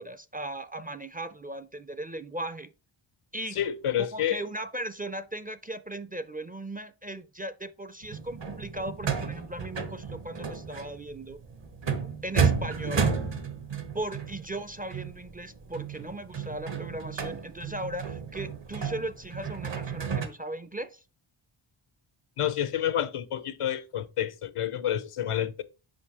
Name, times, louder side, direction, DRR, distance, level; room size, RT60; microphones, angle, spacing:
voice 1, 0.0-2.7 3.3-3.6 4.1-11.4 12.2-13.1 13.9-21.0, right 1 dB, 20° right, 0.4 m, -37 dB
voice 2, 3.5-4.4 22.4-25.6, left 10 dB, 85° left, 0.8 m, -29 dB
sound 1, 8.0-20.3, right 6 dB, 60° right, 1.1 m, -32 dB
6.5 x 5.2 x 2.9 m
wide cardioid pair, 80°, 50 cm